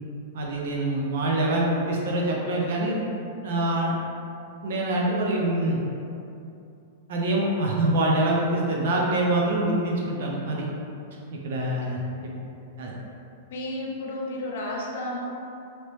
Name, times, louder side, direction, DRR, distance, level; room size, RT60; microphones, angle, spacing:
voice 1, 0.3-3.0 3.4-3.9 4.6-5.8 7.1-10.7 11.3-12.0 12.8-12.9, right 1 dB, 65° right, -2 dB, 0.5 m, -25 dB
voice 2, 13.5-15.3, left 1 dB, 60° left, -2 dB, 0.7 m, -32 dB
2.9 x 2.8 x 3.1 m, 2.6 s
supercardioid pair, 170°, 0 cm